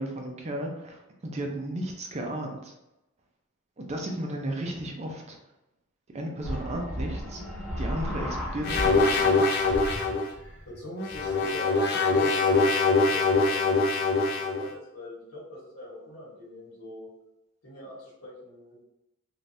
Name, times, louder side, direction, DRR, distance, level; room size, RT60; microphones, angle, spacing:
voice 1, 0.0-2.7 3.8-5.4 6.1-7.4 7.8-9.4, right 1 dB, 30° right, 1 dB, 0.4 m, -34 dB
sound 1, 6.4-9.3 9.6-11.6, equal, 10° left, 1.0 m, -35 dB
sound 2, 8.6-10.3 11.0-14.7, left 3 dB, 45° left, 0.4 m, -23 dB
voice 2, 10.7-13.6 14.2-17.1 17.6-18.8, equal, 80° left, -5 dB, 1.3 m, -42 dB
3.3 x 2.4 x 2.6 m, 0.91 s
head